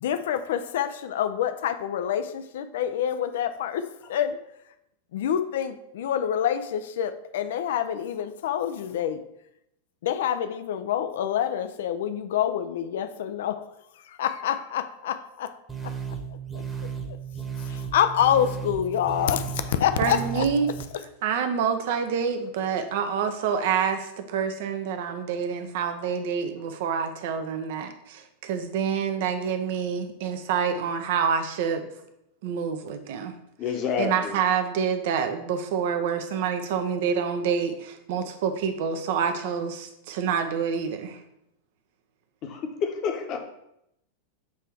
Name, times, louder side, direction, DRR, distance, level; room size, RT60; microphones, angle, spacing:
voice 1, 0.0-3.8 4.1-4.4 5.1-9.2 10.0-13.6 14.2-15.5 17.9-19.4 19.7-20.4, left 9 dB, 55° left, 10 dB, 0.4 m, -26 dB
sound 1, 15.7-20.8, right 7 dB, 10° right, 1.1 m, -35 dB
voice 2, 20.0-31.9 32.4-33.3 34.0-41.2, right 7 dB, 50° right, 8 dB, 0.7 m, -27 dB
voice 3, 33.6-34.3 42.4-43.4, left 6 dB, 35° left, 4 dB, 1.0 m, -28 dB
6.9 x 3.3 x 4.5 m, 0.81 s
figure-of-eight pair, 90°, 0 cm